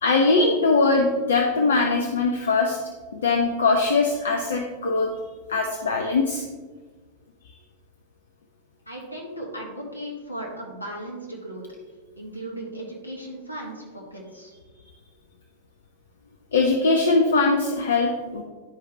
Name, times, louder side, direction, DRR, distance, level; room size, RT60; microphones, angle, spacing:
voice 1, 0.0-2.8 3.1-5.1 5.5-6.4 16.5-18.4, left 3 dB, 65° left, 2 dB, 0.6 m, -21 dB
voice 2, 8.8-11.6 12.2-14.5, right 1 dB, 85° left, -2 dB, 1.7 m, -36 dB
10.5 x 4.7 x 3.2 m, 1.4 s
figure-of-eight pair, 90°, 0 cm